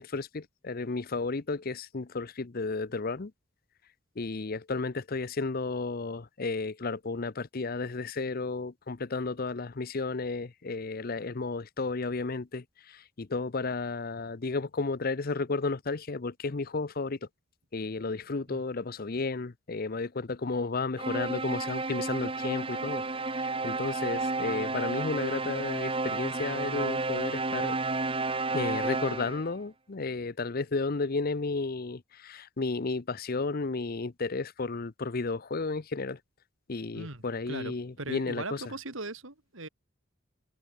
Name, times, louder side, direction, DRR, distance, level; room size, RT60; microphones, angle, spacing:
voice 1, 0.0-3.3 4.2-17.3 17.7-23.0 23.3-27.8 28.5-36.2 36.7-38.6, left 3 dB, 45° left, 0.7 m, -33 dB
sound 1, 21.0-29.5, right 3 dB, 25° right, 2.0 m, -31 dB
voice 2, 36.9-39.7, right 2 dB, 75° right, 3.9 m, -39 dB
head